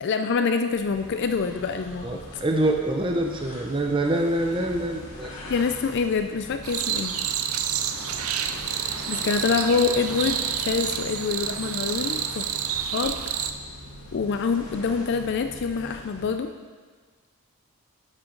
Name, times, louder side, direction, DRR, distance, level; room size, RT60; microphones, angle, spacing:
voice 1, 0.0-2.2 5.5-7.2 9.1-12.5 12.9-13.2 14.1-16.5, left 5 dB, 50° left, 7 dB, 0.4 m, -26 dB
sound 1, 0.7-16.5, left 1 dB, 75° left, 2.0 m, -42 dB
voice 2, 2.0-5.4, right 1 dB, 20° right, 3 dB, 0.6 m, -25 dB
sound 2, 6.6-13.5, right 9 dB, 70° right, 0.5 m, -29 dB
10.0 x 7.4 x 3.8 m, 1.5 s
head